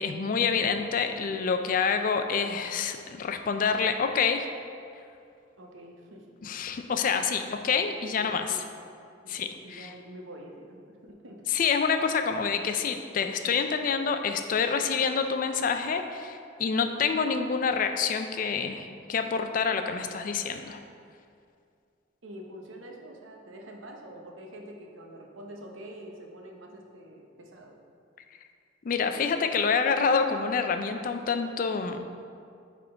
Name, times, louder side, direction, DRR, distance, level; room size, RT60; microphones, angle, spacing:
voice 1, 0.0-4.5 6.4-8.5 9.3-9.9 11.5-20.8 28.8-32.0, left 5 dB, 45° left, 7 dB, 0.3 m, -27 dB
voice 2, 5.6-6.3 8.1-8.6 9.2-10.8 11.0-11.4 22.2-27.7, equal, 90° right, 1 dB, 0.8 m, -46 dB
8.9 x 3.7 x 3.4 m, 2.4 s
head